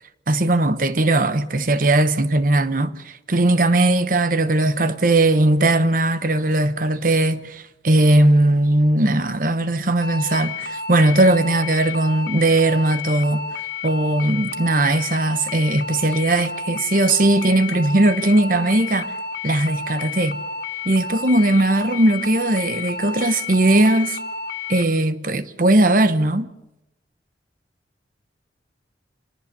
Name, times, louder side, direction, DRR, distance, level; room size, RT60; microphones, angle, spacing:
voice 1, 0.3-13.4 13.8-19.1 19.4-20.4 20.8-24.2 24.7-26.5, right 2 dB, 50° right, 1.0 m, -18 dB
sound 1, 10.0-24.8, left 4 dB, 65° left, 2.1 m, -31 dB
26.5 x 18.0 x 6.8 m
head